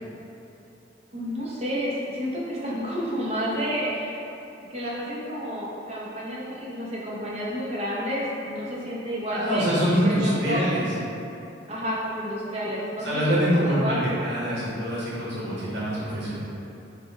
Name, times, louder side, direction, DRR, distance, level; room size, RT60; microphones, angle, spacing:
voice 1, 1.1-4.2 4.7-9.7 10.0-10.6 11.7-14.0, equal, 35° right, -6 dB, 0.7 m, -30 dB
voice 2, 9.3-10.8 13.0-16.4, equal, 60° right, -8 dB, 1.2 m, -25 dB
4.9 x 2.2 x 3.5 m, 2.9 s
head